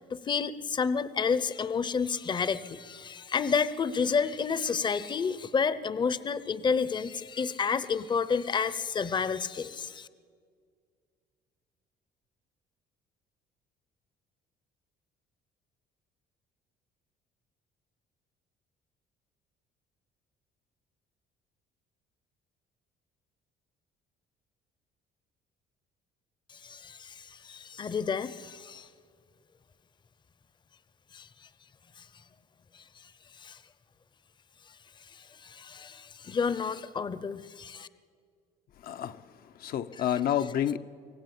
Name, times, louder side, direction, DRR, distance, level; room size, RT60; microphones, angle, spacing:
voice 1, 0.1-10.1 26.5-28.9 31.1-31.3 32.0-32.1 33.4-33.6 35.1-37.9, left 5 dB, 25° left, 15 dB, 0.7 m, -30 dB
voice 2, 38.8-40.8, left 10 dB, 60° left, 9 dB, 0.8 m, -30 dB
24.5 x 16.5 x 9.1 m, 2.1 s
cardioid pair, 110°, 17 cm